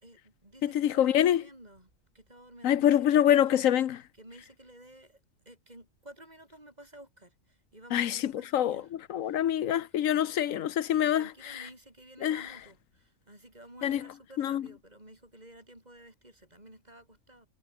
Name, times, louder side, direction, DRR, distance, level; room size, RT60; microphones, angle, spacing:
voice 1, 0.0-3.7 4.1-8.9 9.2-9.5 9.8-10.0 10.3-10.6 11.1-17.5, right 1 dB, 30° right, 6.0 m, -53 dB
voice 2, 0.6-1.4 2.6-4.0 7.9-11.3 12.2-12.4 13.8-14.0 14.4-14.6, left 10 dB, 90° left, 1.2 m, -25 dB
omnidirectional pair, 1.3 m